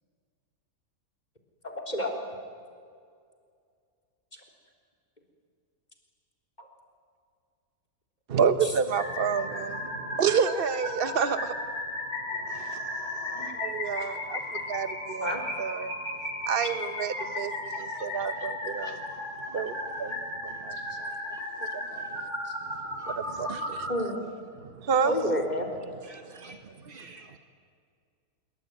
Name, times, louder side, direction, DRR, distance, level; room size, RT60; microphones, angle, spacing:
voice 1, 1.7-2.1 6.6-6.7 8.6-8.7 15.2-15.4 22.5-22.6 23.9-24.2 25.0-25.7, equal, 25° left, 1 dB, 3.9 m, -29 dB
voice 2, 8.3-11.5 12.7-12.8 13.6-15.9 16.5-19.0 19.5-21.1 21.7-22.2 23.1-23.9 24.6-25.1 26.3-26.6, right 6 dB, 40° right, 11 dB, 1.3 m, -29 dB
sound 1, 8.9-23.9, left 1 dB, 50° left, 5.3 m, -35 dB
voice 3, 12.3-13.5 13.8-14.8 16.5-16.7 17.2-17.3 17.7-22.3 23.0-23.2 26.0-27.4, right 2 dB, 85° right, 4 dB, 3.7 m, -52 dB
26.5 x 23.5 x 9.4 m, 2.2 s
omnidirectional pair, 1.6 m